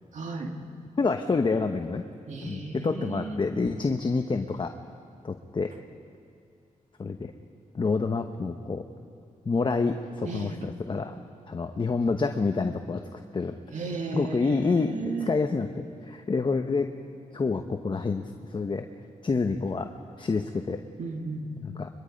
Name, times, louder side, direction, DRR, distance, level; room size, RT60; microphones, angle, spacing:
voice 1, 0.1-0.5 2.3-3.4 10.2-10.6 13.7-14.5 14.8-15.3 21.0-21.5, right 3 dB, 65° right, 2 dB, 2.3 m, -34 dB
voice 2, 1.0-2.0 2.4-4.7 5.2-5.7 7.0-7.3 7.7-8.8 9.4-11.2 11.5-13.6 14.1-16.9 17.3-18.2 18.5-18.9 19.2-19.9 20.2-20.8 21.6-21.9, left 4 dB, 35° left, 5 dB, 1.0 m, -28 dB
23.0 x 22.5 x 5.3 m, 2.4 s
cardioid pair, 90°, 14 cm